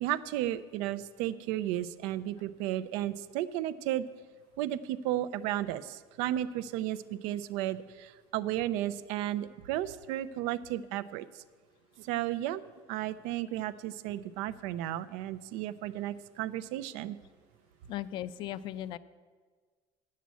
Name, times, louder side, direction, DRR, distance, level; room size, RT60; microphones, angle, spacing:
voice 1, 0.0-4.1 4.6-11.4 12.0-12.6 12.9-17.2, right 13 dB, 85° right, 13 dB, 0.5 m, -34 dB
voice 2, 17.9-19.0, left 12 dB, 45° left, 16 dB, 0.4 m, -37 dB
9.4 x 7.5 x 8.2 m, 1.5 s
cardioid pair, 175°, 11 cm